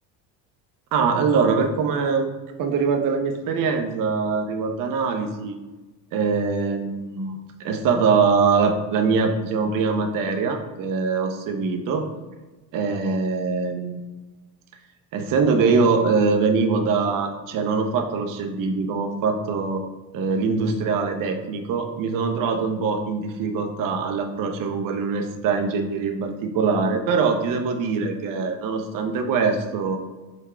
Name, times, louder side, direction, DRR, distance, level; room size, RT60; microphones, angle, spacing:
voice 1, 0.9-2.3 2.6-5.5 6.1-12.1 12.7-14.0 15.1-19.8 20.1-30.0, right 5 dB, 50° right, 5 dB, 0.6 m, -23 dB
4.0 x 2.2 x 4.3 m, 1.2 s
supercardioid pair, 90°, 43 cm